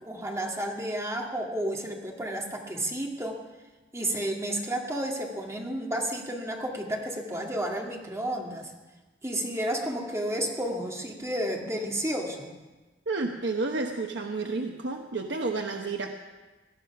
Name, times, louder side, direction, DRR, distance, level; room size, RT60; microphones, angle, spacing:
voice 1, 0.0-3.4 3.9-8.7 9.2-12.5, right 1 dB, 15° right, 1 dB, 2.0 m, -31 dB
voice 2, 13.1-16.1, right 3 dB, 70° right, 2 dB, 1.0 m, -30 dB
18.5 x 11.0 x 5.9 m, 1.2 s
head